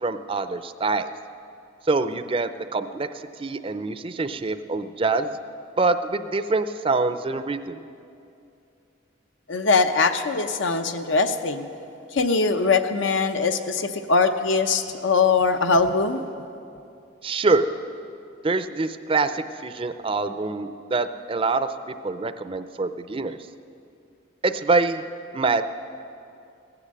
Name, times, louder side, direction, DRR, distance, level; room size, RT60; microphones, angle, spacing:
voice 1, 0.0-1.1 1.9-3.1 3.4-5.3 5.8-7.8 17.2-17.7 18.4-23.4 24.4-25.0 25.3-25.6, right 3 dB, 30° right, 11 dB, 0.5 m, -25 dB
voice 2, 9.5-11.7 12.1-16.2, left 4 dB, 80° left, 8 dB, 0.8 m, -21 dB
16.5 x 9.8 x 7.6 m, 2.6 s
head